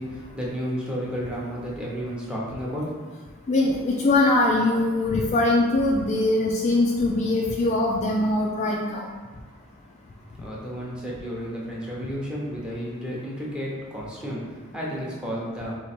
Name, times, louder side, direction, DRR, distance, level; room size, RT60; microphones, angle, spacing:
voice 1, 0.0-2.9 10.4-14.4 14.7-15.7, equal, 5° right, -5 dB, 0.8 m, -32 dB
voice 2, 3.5-9.1, left 2 dB, 30° left, -2 dB, 0.3 m, -22 dB
3.3 x 3.1 x 4.1 m, 1.4 s
head